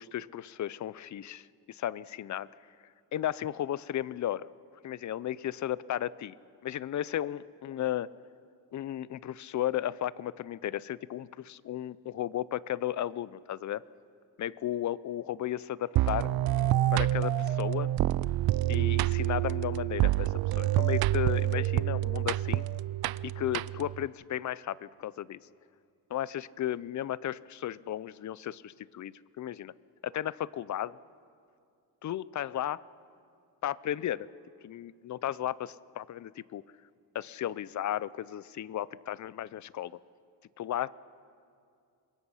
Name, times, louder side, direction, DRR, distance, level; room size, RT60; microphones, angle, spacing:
voice 1, 0.0-2.5 3.1-4.5 4.8-6.4 6.6-8.1 8.7-13.8 14.4-16.3 16.9-17.9 18.7-22.7 23.2-25.4 26.1-29.7 30.0-31.0 32.0-32.8 33.6-34.3 34.6-36.6 37.1-39.9 40.6-41.0, left 12 dB, 45° left, 20 dB, 0.5 m, -34 dB
sound 1, 16.0-24.1, right 14 dB, 60° right, 0.5 m, -27 dB
26.5 x 22.0 x 5.6 m, 2.4 s
cardioid pair, 115°, 41 cm